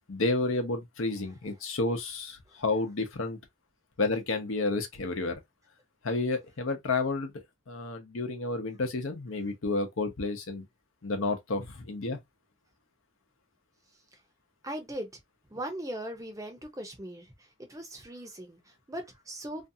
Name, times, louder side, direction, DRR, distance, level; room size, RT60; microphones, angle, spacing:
voice 1, 0.1-3.4 4.0-5.3 6.0-7.3 7.7-10.6 11.0-12.2, left 3 dB, 75° left, 0.7 m, -30 dB
voice 2, 14.6-15.1 15.5-19.7, right 1 dB, 15° right, 0.6 m, -39 dB
2.6 x 2.3 x 2.6 m
head